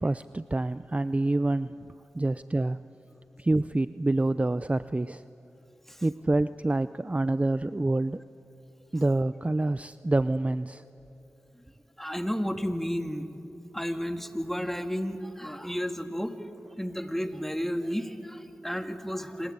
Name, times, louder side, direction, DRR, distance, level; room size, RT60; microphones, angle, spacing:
voice 1, 0.0-1.7 2.1-2.8 3.4-5.2 6.0-8.2 8.9-10.8, right 2 dB, 25° right, 14 dB, 0.5 m, -27 dB
voice 2, 12.0-13.3 13.7-16.5 16.8-19.5, equal, 5° left, 7 dB, 2.0 m, -32 dB
27.0 x 21.0 x 8.8 m, 2.8 s
cardioid pair, 40°, 5 cm